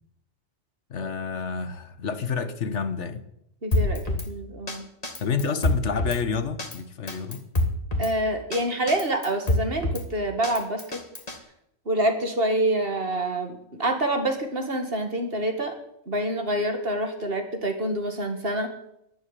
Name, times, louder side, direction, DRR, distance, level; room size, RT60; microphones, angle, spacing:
voice 1, 0.9-3.2 5.2-7.4, left 5 dB, 70° left, 1.5 m, -29 dB
voice 2, 3.6-4.0 4.3-4.9 8.0-11.0 11.9-15.8 16.1-18.7, right 1 dB, 50° right, 2.3 m, -26 dB
Drum kit, 3.7-4.3 4.7-4.8 5.0-6.2 6.6-6.8 7.1-8.1 8.5-8.6 8.9-10.0 10.4-11.4, left 2 dB, 30° left, 1.9 m, -26 dB
12.0 x 10.5 x 10.0 m
omnidirectional pair, 1.3 m